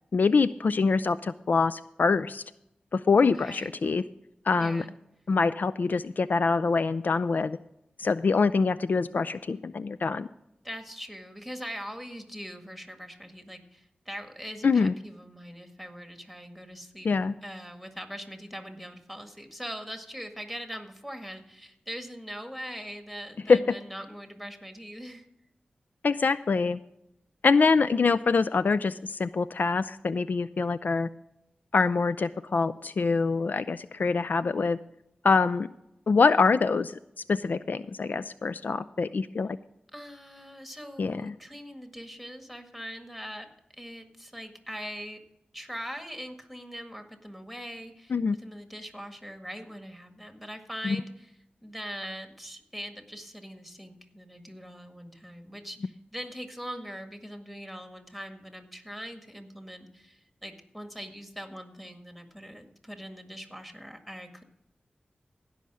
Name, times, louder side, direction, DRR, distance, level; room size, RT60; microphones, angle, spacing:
voice 1, 0.1-2.4 2.9-4.0 4.5-4.8 5.3-7.6 8.0-10.3 14.6-14.9 17.0-17.3 23.5-23.6 26.0-26.8 27.4-31.1 31.7-34.8 35.2-35.7 36.1-37.0 37.3-39.6 41.0-41.3 48.1-48.4 50.8-51.0, left 4 dB, 65° left, 14 dB, 0.3 m, -24 dB
voice 2, 3.2-3.8 4.6-4.9 10.6-17.1 17.4-25.3 39.9-43.5 43.7-45.2 45.5-51.3 51.6-64.4, equal, 5° left, 5 dB, 1.8 m, -41 dB
16.0 x 5.7 x 6.2 m, 0.82 s
cardioid pair, 50°, 3 cm